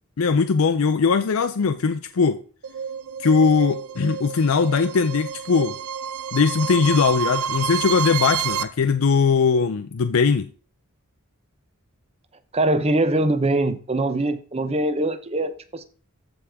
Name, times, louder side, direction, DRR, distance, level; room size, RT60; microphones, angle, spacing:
voice 1, 0.2-2.4 3.2-5.7 6.3-10.5, left 5 dB, 75° left, 0.5 m, -20 dB
sound 1, 2.6-8.6, right 7 dB, 85° right, 0.8 m, -29 dB
voice 2, 12.5-15.8, right 2 dB, 30° right, 0.8 m, -22 dB
14.0 x 5.0 x 3.5 m
head